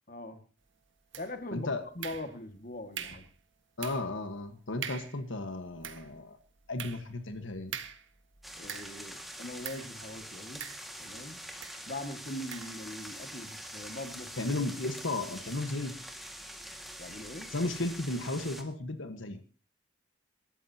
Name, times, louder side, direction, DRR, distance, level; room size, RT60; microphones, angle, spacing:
voice 1, 0.1-0.4 1.2-3.3 8.6-10.7 11.0-11.4 11.9-14.5 17.0-17.5, left 1 dB, 45° left, 7 dB, 2.0 m, -42 dB
sound 1, 1.1-1.5 2.0-2.6 2.9-3.3 3.8-4.2 4.5-4.6 4.8-5.2 5.6-9.1 9.6-10.0 10.6-11.2 11.6-11.8 12.5-12.8, right 8 dB, 70° right, 1.7 m, -43 dB
voice 2, 3.8-6.4 6.7-7.8 14.4-15.9 17.5-19.4, left 2 dB, 75° left, 7 dB, 1.4 m, -34 dB
sound 2, 8.4-18.6, equal, ahead, 1.9 m, -45 dB
27.5 x 13.5 x 2.9 m, 0.35 s
head